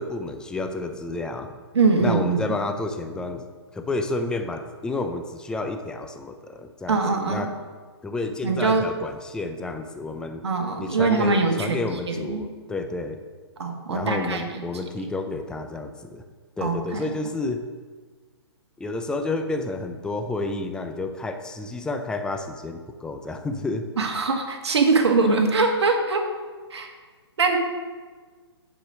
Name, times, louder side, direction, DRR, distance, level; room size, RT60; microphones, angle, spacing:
voice 1, 0.0-1.5 2.0-3.4 3.7-7.5 8.0-10.4 10.8-13.2 13.9-16.2 16.6-17.6 18.8-23.8, left 2 dB, 5° left, 6 dB, 0.5 m, -30 dB
voice 2, 1.7-2.5 6.9-7.5 8.4-8.8 10.4-11.8 12.1-12.5 13.6-14.6 16.6-17.0 24.0-26.2 26.7-26.9 27.4-27.6, right 4 dB, 70° right, 3 dB, 1.6 m, -22 dB
9.0 x 5.0 x 6.1 m, 1.5 s
hypercardioid pair, 135°, 14 cm